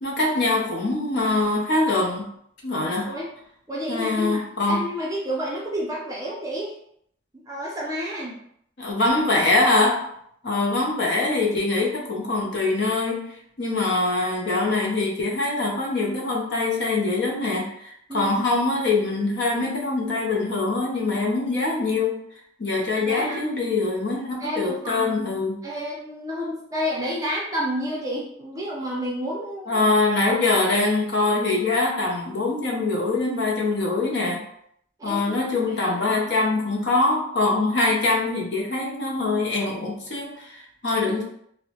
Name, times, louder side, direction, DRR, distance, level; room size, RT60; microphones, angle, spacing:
voice 1, 0.0-2.2 2.6-3.2 3.9-4.8 8.8-10.0 10.4-13.2 13.6-22.2 22.6-25.6 29.7-34.4 35.0-41.2, left 2 dB, 55° left, -2 dB, 0.6 m, -23 dB
voice 2, 3.7-6.7 7.5-8.4 18.1-18.5 23.0-23.4 24.4-25.2 25.6-29.8 30.3-30.6 35.0-35.5 35.8-36.2, equal, 15° right, -4 dB, 0.5 m, -30 dB
2.7 x 2.1 x 2.8 m, 0.70 s
head